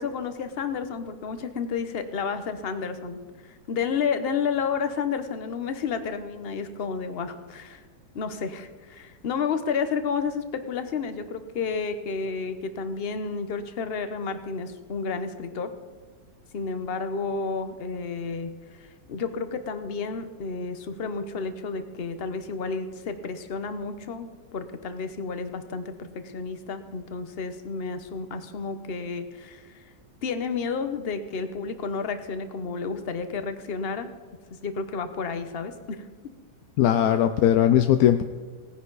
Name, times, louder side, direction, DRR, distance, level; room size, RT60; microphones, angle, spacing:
voice 1, 0.0-7.8 8.1-15.7 16.5-18.5 18.8-29.8 30.2-34.1 34.6-36.0, left 5 dB, 45° left, 9 dB, 0.9 m, -31 dB
voice 2, 36.8-38.2, left 10 dB, 70° left, 8 dB, 0.9 m, -19 dB
17.5 x 10.5 x 4.0 m, 1.5 s
omnidirectional pair, 1.9 m